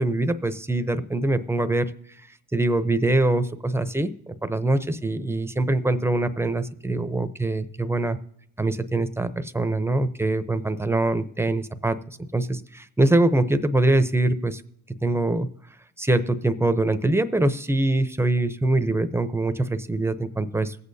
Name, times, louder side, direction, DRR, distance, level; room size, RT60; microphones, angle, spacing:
voice 1, 0.0-1.9 2.5-8.2 8.6-14.6 15.0-15.5 16.0-20.8, right 2 dB, 10° right, 11 dB, 0.7 m, -23 dB
22.5 x 8.4 x 2.7 m, 0.71 s
cardioid pair, 90°, 30 cm